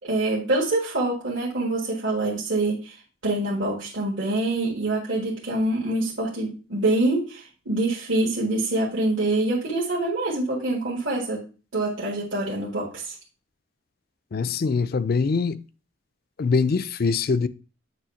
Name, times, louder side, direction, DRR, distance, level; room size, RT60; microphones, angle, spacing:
voice 1, 0.0-3.0 3.2-11.4 11.7-13.2, right 2 dB, 65° right, 1.9 m, -25 dB
voice 2, 14.3-15.6 16.4-17.5, left 4 dB, 45° left, 0.4 m, -23 dB
8.9 x 3.2 x 5.5 m
head